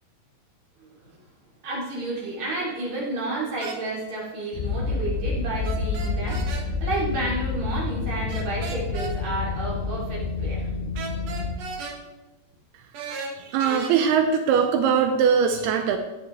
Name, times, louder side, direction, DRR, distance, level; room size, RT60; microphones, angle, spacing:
voice 1, 0.8-1.2 1.6-10.7, right 2 dB, 45° right, -5 dB, 4.4 m, -31 dB
sound 1, 3.6-3.8 5.6-6.6 8.3-9.1 10.9-12.0 12.9-13.9, right 5 dB, 60° right, 1.8 m, -35 dB
sound 2, 4.5-11.6, left 4 dB, 85° left, 3.0 m, -28 dB
voice 2, 13.4-16.0, right 7 dB, 80° right, 5 dB, 2.7 m, -21 dB
16.5 x 9.8 x 3.4 m, 1.0 s
omnidirectional pair, 4.7 m